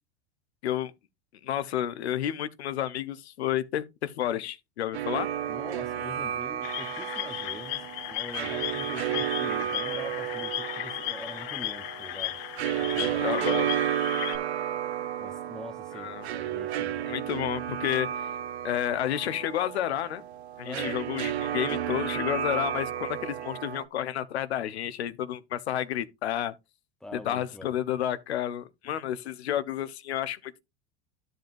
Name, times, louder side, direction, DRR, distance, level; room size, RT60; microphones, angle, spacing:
voice 1, 1.4-5.3 13.2-13.8 15.9-16.3 17.1-18.3 18.6-20.2 20.6-26.5 27.2-30.6, left 11 dB, 90° left, 0.8 m, -31 dB
sound 1, 4.9-23.8, right 10 dB, 85° right, 0.7 m, -32 dB
voice 2, 5.5-12.4 12.8-13.3 15.2-17.1 20.6-21.0 27.0-27.8, left 1 dB, ahead, 0.9 m, -44 dB
sound 2, 6.6-14.4, left 16 dB, 60° left, 0.9 m, -35 dB
13.0 x 5.3 x 2.6 m
hypercardioid pair, 95°, 32 cm